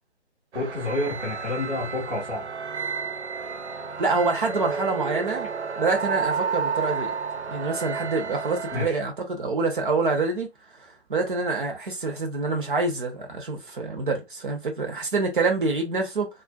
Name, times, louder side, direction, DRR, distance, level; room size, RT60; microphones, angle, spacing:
voice 1, 0.5-2.4 8.7-9.0, left 2 dB, 10° left, 0.5 m, -29 dB
sound 1, 0.5-8.9, right 5 dB, 75° right, 0.6 m, -31 dB
voice 2, 4.0-5.5 5.8-7.1 7.5-10.5 11.1-16.3, right 3 dB, 50° right, 0.9 m, -26 dB
2.4 x 2.4 x 2.3 m
figure-of-eight pair, 155°, 34 cm